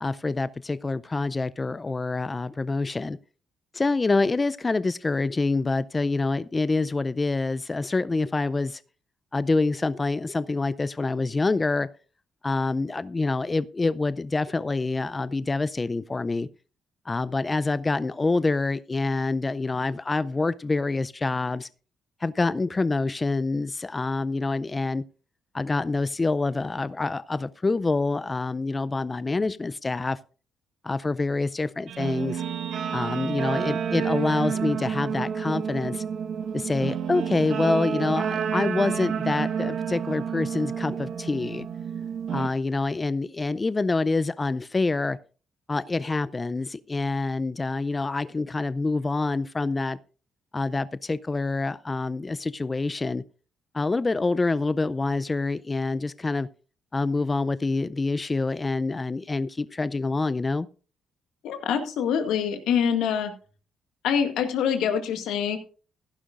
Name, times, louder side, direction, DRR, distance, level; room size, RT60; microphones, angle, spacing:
voice 1, 0.0-3.2 3.7-8.8 9.3-11.9 12.4-16.5 17.1-21.7 22.2-25.0 25.5-30.2 30.8-32.4 32.9-36.0 36.5-41.7 42.3-45.2 45.7-50.0 50.5-53.2 53.7-56.5 56.9-60.7, left 3 dB, 25° left, 16 dB, 0.4 m, -26 dB
Guitar, 31.9-42.5, right 7 dB, 70° right, 1.2 m, -30 dB
voice 2, 61.4-63.3 64.0-65.6, left 8 dB, 85° left, 7 dB, 1.8 m, -25 dB
15.5 x 11.5 x 2.5 m, 0.37 s
cardioid pair, 90°, 0 cm